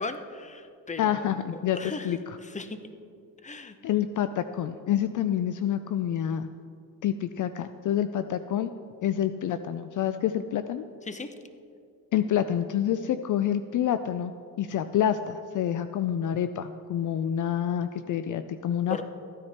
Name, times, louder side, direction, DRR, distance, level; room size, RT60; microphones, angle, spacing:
voice 1, 0.0-1.3 1.5-2.2 2.4-2.8 3.4-3.8 11.1-11.3 18.9-19.0, left 3 dB, 20° left, 9 dB, 0.9 m, -37 dB
voice 2, 1.0-1.8 2.0-2.4 3.8-6.5 7.0-8.7 9.0-10.8 12.1-14.3 14.6-19.0, left 10 dB, 55° left, 11 dB, 0.5 m, -27 dB
14.5 x 9.9 x 4.3 m, 2.4 s
cardioid pair, 80°, 37 cm